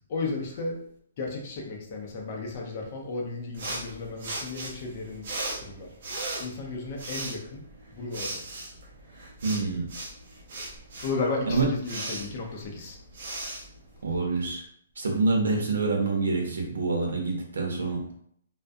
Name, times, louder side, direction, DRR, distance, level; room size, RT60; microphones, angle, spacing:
voice 1, 0.1-0.8 1.2-5.3 5.6-5.9 6.4-7.6 7.9-8.4 11.0-13.0, left 3 dB, 35° left, 0 dB, 0.5 m, -34 dB
sound 1, 3.5-14.5, right 2 dB, 45° right, 0.6 m, -38 dB
voice 2, 9.4-9.9 11.5-11.7 14.0-14.6 15.0-18.0, right 3 dB, 90° right, 0 dB, 0.7 m, -26 dB
2.3 x 2.1 x 2.6 m, 0.66 s
hypercardioid pair, 170°, 0 cm